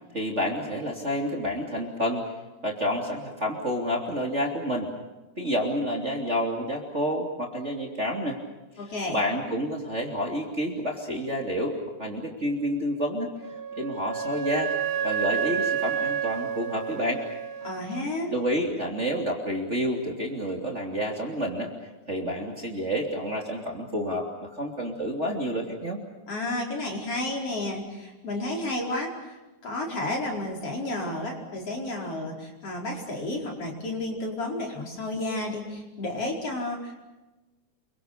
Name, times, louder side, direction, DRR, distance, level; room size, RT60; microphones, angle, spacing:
voice 1, 0.1-2.3 2.6-4.9 5.4-8.4 9.1-13.3 13.8-14.7 15.0-17.2 18.3-21.7 22.1-26.0, equal, 25° right, 1 dB, 3.2 m, -29 dB
voice 2, 8.8-9.2 17.6-18.3 26.3-29.1 29.6-37.1, left 2 dB, 50° left, 0 dB, 5.7 m, -31 dB
Wind instrument woodwind instrument, 13.4-18.1, right 8 dB, 90° right, 2.8 m, -30 dB
29.0 x 24.5 x 6.8 m, 1.1 s
omnidirectional pair, 3.5 m